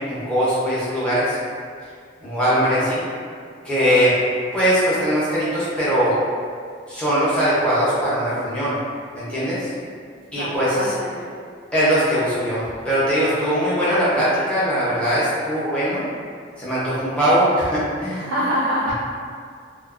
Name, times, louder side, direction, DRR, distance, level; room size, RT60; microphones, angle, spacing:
voice 1, 0.0-1.4 2.2-3.0 3.6-4.1 4.5-6.2 6.9-8.8 9.1-9.7 10.3-10.9 11.7-16.1 16.6-18.3, equal, 5° left, -11 dB, 0.6 m, -20 dB
voice 2, 10.4-11.3 18.1-18.9, equal, 80° right, -5 dB, 0.3 m, -25 dB
2.4 x 2.2 x 2.4 m, 2.1 s
head